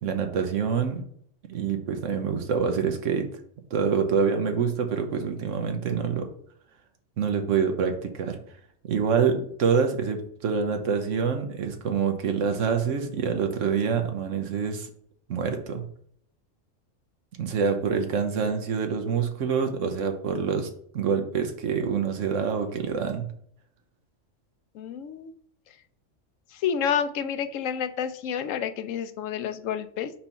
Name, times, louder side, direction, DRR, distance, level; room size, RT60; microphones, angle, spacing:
voice 1, 0.0-1.0 1.5-3.3 3.7-6.3 7.2-8.4 8.9-14.9 15.3-15.8 17.4-20.7 20.9-23.3, right 6 dB, 75° right, 6 dB, 1.2 m, -26 dB
voice 2, 24.7-25.3 26.5-30.1, left 8 dB, 80° left, 11 dB, 1.0 m, -29 dB
4.4 x 4.4 x 5.5 m, 0.63 s
omnidirectional pair, 1.3 m